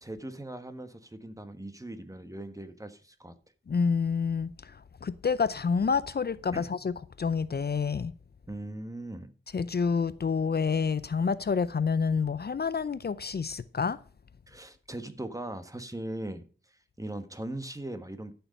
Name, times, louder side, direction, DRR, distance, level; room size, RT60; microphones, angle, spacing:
voice 1, 0.0-3.4 6.5-6.7 8.5-9.3 14.5-18.3, right 1 dB, 15° right, 1.4 m, -39 dB
voice 2, 3.7-8.1 9.5-14.0, left 5 dB, 50° left, 0.5 m, -28 dB
12.5 x 6.7 x 5.2 m
wide cardioid pair, 80°, 21 cm